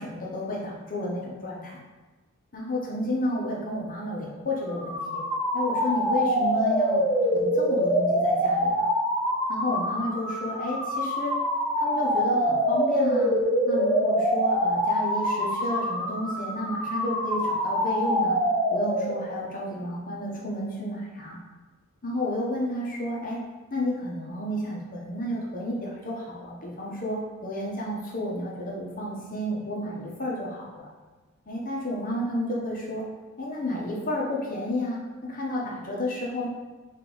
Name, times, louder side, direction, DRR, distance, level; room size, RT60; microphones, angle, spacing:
voice 1, 0.0-1.8 2.5-5.2 5.5-7.0 7.3-8.9 9.5-11.3 11.8-13.3 13.7-18.4 18.7-21.4 22.0-23.4 23.7-30.9 31.5-33.0 33.4-36.5, left 1 dB, 40° left, -3 dB, 0.9 m, -31 dB
sound 1, 4.7-19.4, equal, ahead, 0.7 m, -25 dB
5.3 x 2.5 x 3.8 m, 1.3 s
head